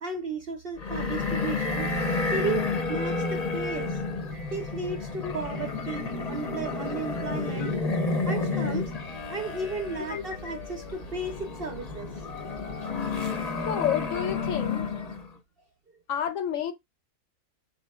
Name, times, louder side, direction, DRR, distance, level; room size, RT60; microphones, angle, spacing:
voice 1, 0.0-1.9 2.3-4.0 4.5-7.8 8.3-8.9 9.3-12.1 13.3-13.4, right 4 dB, 55° right, 0.7 m, -34 dB
sound 1, 0.8-15.3, left 3 dB, 40° left, 0.6 m, -31 dB
voice 2, 7.6-8.0 10.1-10.2 13.7-14.9 16.1-16.7, left 10 dB, 70° left, 0.8 m, -30 dB
4.4 x 3.1 x 2.2 m
omnidirectional pair, 1.6 m